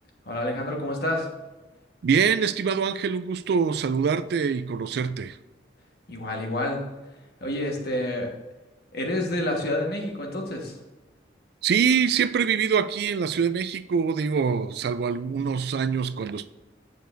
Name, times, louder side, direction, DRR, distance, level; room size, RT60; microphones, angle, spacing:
voice 1, 0.2-1.3 6.1-6.8 7.4-8.3 8.9-10.7, left 1 dB, 60° left, 1.4 m, -28 dB
voice 2, 2.0-5.4 11.6-16.5, right 6 dB, 60° right, 0.3 m, -24 dB
9.0 x 6.7 x 2.6 m
head